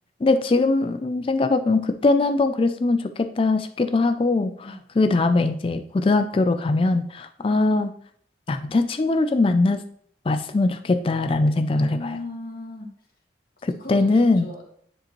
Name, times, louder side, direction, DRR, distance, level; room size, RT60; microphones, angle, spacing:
voice 1, 0.2-7.9 8.5-9.8 10.3-12.2 13.6-14.5, left 3 dB, 30° left, 9 dB, 0.3 m, -21 dB
voice 2, 11.7-12.9 13.8-14.6, left 2 dB, 50° left, -1 dB, 1.9 m, -36 dB
9.9 x 5.0 x 3.0 m, 0.62 s
head